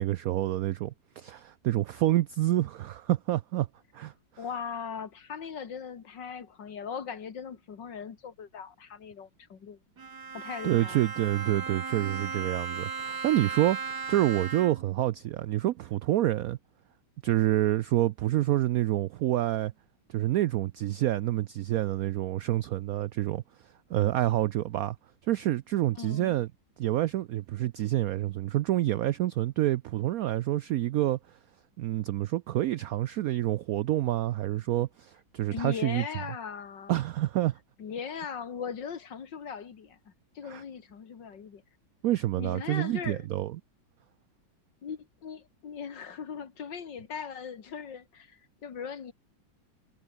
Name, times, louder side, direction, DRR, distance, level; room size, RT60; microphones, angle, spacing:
voice 1, 0.0-3.7 3.9-4.1 10.6-16.6 17.2-19.7 20.1-23.4 23.9-25.0 25.3-26.5 26.8-31.2 31.8-36.0 36.9-37.6 40.5-40.6 42.0-43.5, right 14 dB, 85° right, 0.7 m, -27 dB
voice 2, 4.4-9.8 10.3-11.1 26.0-26.4 35.5-37.0 37.8-41.6 42.4-43.3 44.8-49.1, left 7 dB, 65° left, 2.5 m, -39 dB
Bowed string instrument, 10.0-15.0, right 5 dB, 55° right, 2.8 m, -36 dB
omnidirectional pair, 2.1 m